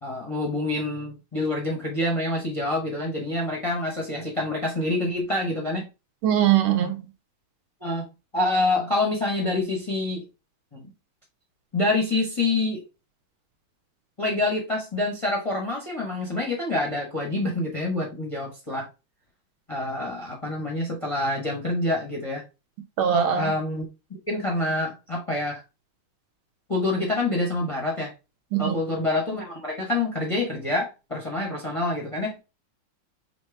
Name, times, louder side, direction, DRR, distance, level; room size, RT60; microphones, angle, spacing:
voice 1, 0.0-5.9 7.8-10.2 10.7-10.9 11.7-12.8 14.2-18.9 19.7-22.4 23.3-23.9 24.3-25.6 26.7-28.1 28.6-32.4, left 2 dB, 25° left, 0.6 m, -27 dB
voice 2, 6.2-7.0 23.0-23.5 28.5-28.8, right 9 dB, 75° right, 1.7 m, -21 dB
5.3 x 2.9 x 3.2 m
omnidirectional pair, 2.3 m